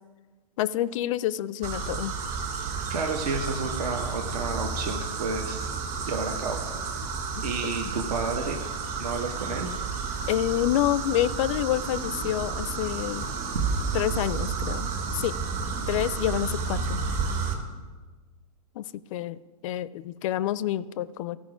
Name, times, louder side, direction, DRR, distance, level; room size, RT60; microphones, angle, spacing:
voice 1, 0.6-2.2 7.4-7.7 10.3-13.3 13.9-15.3 15.9-17.0 18.8-21.4, left 12 dB, 55° left, 17 dB, 0.4 m, -28 dB
sound 1, 1.6-17.5, right 5 dB, 35° right, 2.0 m, -31 dB
voice 2, 2.6-5.7 6.1-6.6 7.4-8.6 9.0-9.7, right 4 dB, 75° right, 2 dB, 1.0 m, -31 dB
14.5 x 5.1 x 4.9 m, 1.3 s
hypercardioid pair, 125°, 20 cm